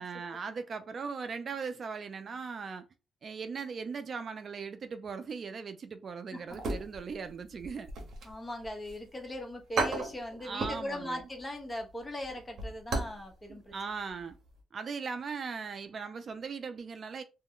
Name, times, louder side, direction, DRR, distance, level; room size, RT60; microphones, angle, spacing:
voice 1, 0.0-2.9 3.2-7.9 10.4-11.2 13.5-14.4 14.7-17.2, right 5 dB, 45° right, 0.3 m, -39 dB
sound 1, 6.5-7.3 7.6-9.0 9.3-9.4 9.8-10.9 11.2-11.4 11.8-13.2 13.5-13.6 14.1-14.3 14.6-14.7, right 3 dB, 65° right, 0.8 m, -34 dB
voice 2, 8.2-13.7, left 1 dB, 20° left, 0.9 m, -39 dB
2.3 x 2.1 x 3.6 m
cardioid pair, 90°, 0 cm